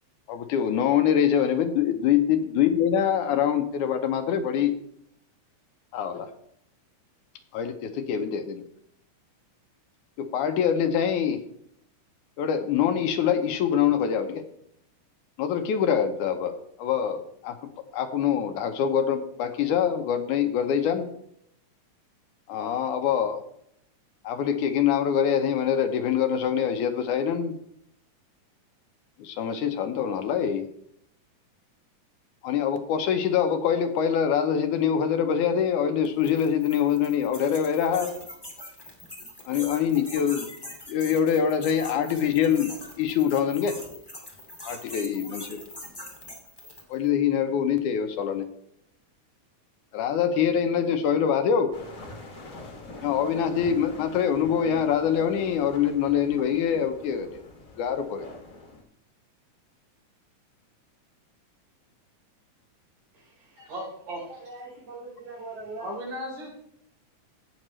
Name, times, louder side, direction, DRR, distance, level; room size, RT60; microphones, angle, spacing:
voice 1, 0.3-4.7 5.9-6.3 7.5-8.6 10.2-11.4 12.4-14.4 15.4-16.5 16.8-17.6 17.9-21.1 22.5-23.4 24.2-27.6 29.2-30.6 32.4-38.1 39.5-40.5 40.9-43.7 44.7-45.6 46.9-48.5 49.9-51.7 53.0-57.4 57.8-58.3, left 8 dB, 80° left, 7 dB, 2.3 m, -24 dB
sound 1, 36.0-47.0, left 1 dB, 10° left, 1.6 m, -42 dB
sound 2, 51.7-58.8, left 2 dB, 35° left, 1.6 m, -44 dB
voice 2, 63.1-64.3 65.8-66.6, equal, 80° right, -4 dB, 6.1 m, -37 dB
voice 3, 64.3-65.9, right 3 dB, 50° right, -1 dB, 3.4 m, -40 dB
16.5 x 6.5 x 3.2 m, 0.71 s
omnidirectional pair, 3.6 m